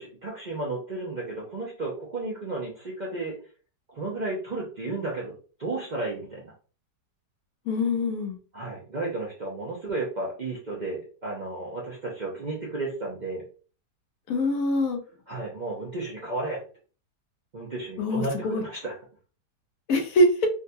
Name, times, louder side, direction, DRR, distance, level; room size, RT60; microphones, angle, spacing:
voice 1, 0.0-3.3 3.9-5.3 5.6-6.5 8.5-13.4 15.3-16.6 17.5-18.9, right 2 dB, 60° right, -4 dB, 0.4 m, -33 dB
voice 2, 7.7-8.4 14.3-15.0 18.0-18.6 19.9-20.5, left 1 dB, 65° left, 4 dB, 0.9 m, -24 dB
3.7 x 2.2 x 2.7 m, 0.38 s
omnidirectional pair, 1.8 m